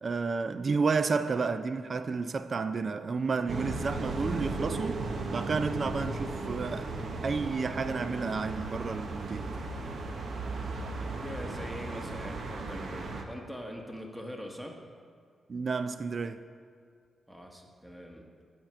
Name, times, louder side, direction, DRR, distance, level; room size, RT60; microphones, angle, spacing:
voice 1, 0.0-5.0 5.3-6.9 7.2-9.6 15.5-16.4, right 4 dB, 50° right, 0.3 m, -31 dB
sound 1, 3.5-13.2, right 3 dB, 65° right, 0.8 m, -36 dB
voice 2, 11.2-14.8 17.3-18.3, equal, 5° right, 1.2 m, -42 dB
8.9 x 4.4 x 5.9 m
cardioid pair, 70°, 0 cm